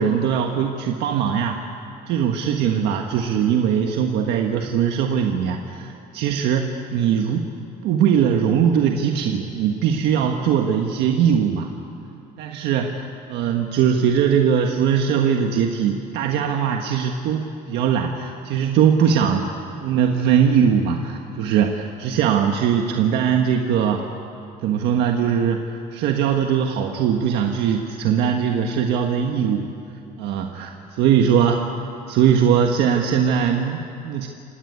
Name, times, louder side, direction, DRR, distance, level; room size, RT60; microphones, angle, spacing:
voice 1, 0.0-1.6 2.1-7.5 7.8-11.7 12.4-19.5 19.8-24.0 24.6-29.7 30.2-31.7 32.1-34.3, right 8 dB, 85° right, 3 dB, 1.5 m, -20 dB
27.5 x 16.5 x 9.6 m, 2.6 s
cardioid pair, 110°, 17 cm